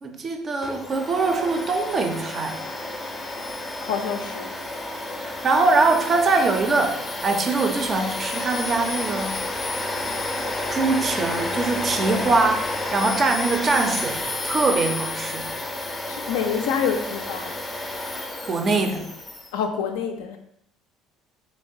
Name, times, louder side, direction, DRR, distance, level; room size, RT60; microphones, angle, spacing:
voice 1, 0.0-2.7 5.2-9.4 10.7-15.5 18.5-19.1, right 3 dB, 35° right, 5 dB, 0.4 m, -23 dB
Domestic sounds home sounds, 0.6-19.5, left 2 dB, 15° left, 0.5 m, -30 dB
voice 2, 3.8-4.5 16.1-17.6 19.5-20.4, left 7 dB, 65° left, 4 dB, 0.3 m, -27 dB
3.1 x 2.9 x 2.6 m, 0.73 s
figure-of-eight pair, 60°, 0 cm